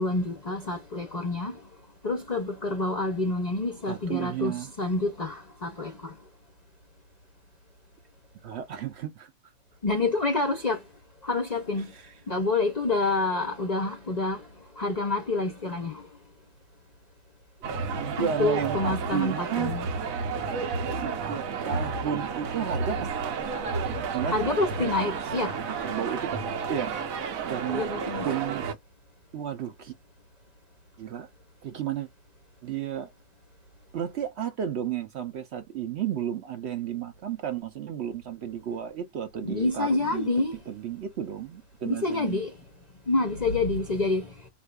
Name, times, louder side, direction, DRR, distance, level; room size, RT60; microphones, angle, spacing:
voice 1, 0.0-1.6 2.0-6.1 9.8-10.8 11.2-11.9 12.3-14.4 14.8-16.0 18.2-19.9 24.2-25.6 27.7-28.3 39.4-40.6 41.8-42.5 43.1-44.3, left 2 dB, 45° left, 0.6 m, -28 dB
voice 2, 3.9-4.7 8.4-9.3 11.9-12.1 17.9-19.7 20.9-23.1 24.1-24.9 25.8-27.0 27.4-27.9 28.2-28.7 29.3-29.9 31.0-31.3 31.6-32.1 32.6-33.1 33.9-40.3 40.7-42.4, right 9 dB, 60° right, 0.8 m, -33 dB
sound 1, 17.6-28.7, right 5 dB, 75° right, 1.1 m, -31 dB
4.0 x 2.5 x 2.2 m
omnidirectional pair, 1.4 m